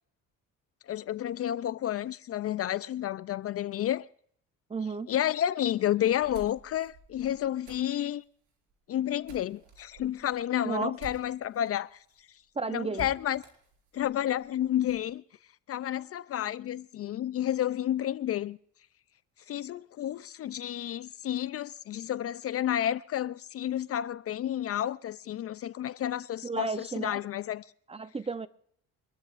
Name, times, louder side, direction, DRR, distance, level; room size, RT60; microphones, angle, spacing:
voice 1, 0.9-4.1 5.1-8.2 8.9-12.0 12.7-13.4 13.9-15.2 15.7-18.6 19.5-27.6, left 11 dB, 45° left, 0.4 m, -31 dB
voice 2, 4.7-5.1 10.6-11.0 12.6-13.1 26.4-27.2 27.9-28.5, right 4 dB, 20° right, 0.7 m, -33 dB
sound 1, 6.0-11.7 12.1-12.2 12.4-12.5 12.9-15.1, right 3 dB, 65° right, 4.8 m, -50 dB
25.0 x 13.0 x 2.5 m
cardioid pair, 105°, 33 cm